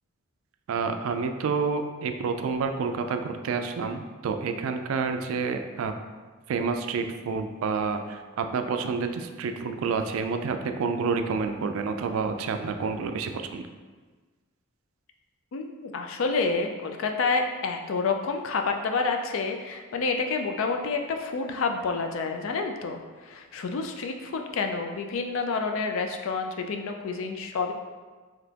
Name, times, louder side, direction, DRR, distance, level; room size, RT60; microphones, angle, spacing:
voice 1, 0.7-5.9 6.5-13.7, right 5 dB, 70° right, 6 dB, 0.3 m, -29 dB
voice 2, 15.5-23.0 23.2-27.7, left 4 dB, 65° left, 5 dB, 0.4 m, -28 dB
4.0 x 2.9 x 2.8 m, 1.4 s
head